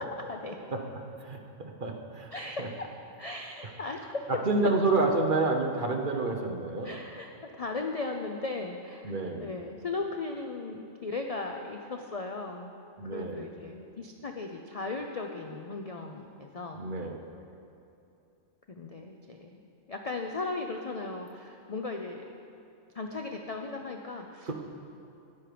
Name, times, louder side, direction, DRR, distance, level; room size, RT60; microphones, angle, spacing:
voice 1, 0.2-0.6 2.3-2.9 3.2-4.3 4.6-4.7 6.8-12.7 13.0-16.8 18.7-19.6 19.9-22.2 22.9-24.5, left 3 dB, 50° left, 3 dB, 0.4 m, -37 dB
voice 2, 1.2-2.3 2.6-2.7 4.3-6.9 9.0-9.4 13.0-13.4 16.7-17.2 24.5-24.6, right 3 dB, 45° right, 3 dB, 1.0 m, -29 dB
12.5 x 9.3 x 5.0 m, 2.7 s
omnidirectional pair, 1.4 m